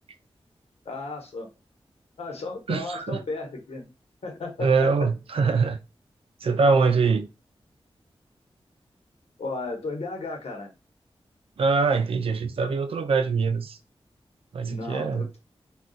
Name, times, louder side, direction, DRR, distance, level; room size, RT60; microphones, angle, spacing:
voice 1, 0.8-1.5 2.2-3.8 4.2-4.9 9.4-10.7 14.6-15.4, left 3 dB, 90° left, 0.9 m, -34 dB
voice 2, 2.7-3.2 4.6-5.8 6.4-7.3 11.6-13.8 14.5-15.3, right 4 dB, 65° right, 0.4 m, -23 dB
2.3 x 2.3 x 3.8 m
wide cardioid pair, 105°, 10 cm